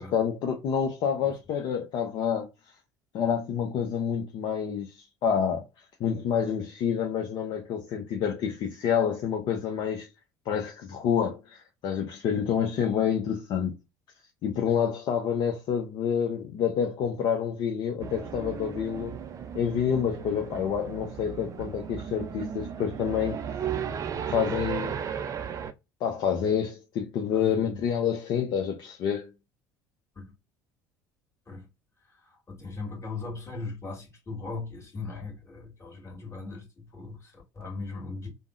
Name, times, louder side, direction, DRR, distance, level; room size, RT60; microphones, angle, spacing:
voice 1, 0.0-2.5 3.1-5.0 5.2-5.6 6.0-10.1 10.5-13.7 14.4-19.2 19.5-23.4 24.3-25.0 26.0-29.3, left 8 dB, 50° left, 0.6 m, -28 dB
sound 1, 18.0-25.7, right 8 dB, 35° right, 0.4 m, -35 dB
voice 2, 27.3-27.8 30.2-30.3 31.5-31.7 32.2-38.3, left 3 dB, 30° left, 1.8 m, -39 dB
3.5 x 2.0 x 2.5 m
figure-of-eight pair, 65°, 10 cm